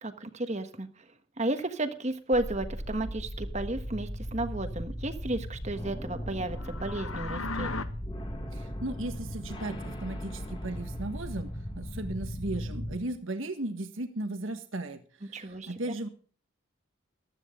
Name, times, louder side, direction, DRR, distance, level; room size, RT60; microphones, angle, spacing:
voice 1, 0.0-1.1 1.4-7.8 15.3-15.7, right 2 dB, 35° right, 9 dB, 1.3 m, -33 dB
sound 1, 2.3-13.0, equal, 25° left, 1.9 m, -37 dB
sound 2, 6.5-7.8, left 3 dB, 80° left, 1.1 m, -36 dB
voice 2, 8.5-16.1, right 2 dB, 70° right, 7 dB, 1.5 m, -36 dB
15.0 x 12.5 x 3.7 m, 0.42 s
head